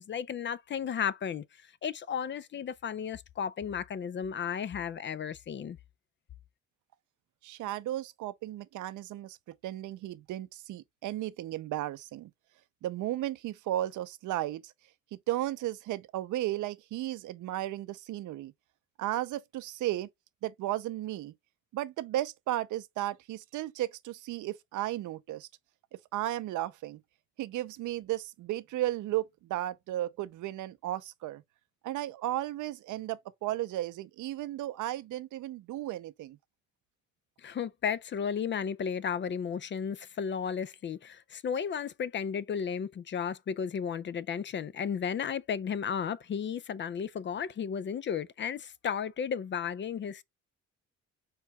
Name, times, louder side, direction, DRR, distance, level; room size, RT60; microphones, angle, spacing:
voice 1, 0.0-1.4 1.8-5.8 37.4-50.2, left 7 dB, 40° left, 0.4 m, -34 dB
voice 2, 7.4-9.4 9.6-12.3 12.8-14.7 15.1-18.5 19.0-20.1 20.4-21.3 21.7-25.5 26.1-27.0 27.4-31.4 31.8-36.4, right 14 dB, 80° right, 0.6 m, -34 dB
4.6 x 4.4 x 2.3 m
cardioid pair, 90°, 30 cm